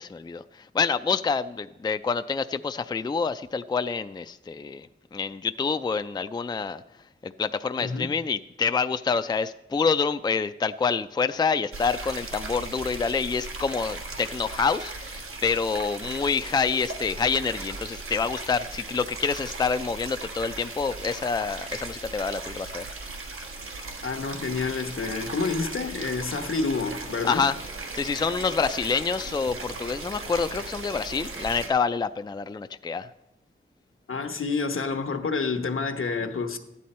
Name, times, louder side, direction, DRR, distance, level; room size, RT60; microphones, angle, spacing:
voice 1, 0.0-4.9 5.1-6.8 7.2-22.8 27.2-27.6 27.9-33.1, left 5 dB, 20° left, 0.3 m, -27 dB
voice 2, 7.8-8.1 24.0-27.5 34.1-36.6, left 4 dB, 75° left, 1.1 m, -28 dB
sound 1, 11.7-31.7, right 3 dB, 90° right, 1.5 m, -37 dB
14.0 x 9.3 x 4.3 m
wide cardioid pair, 95°, 21 cm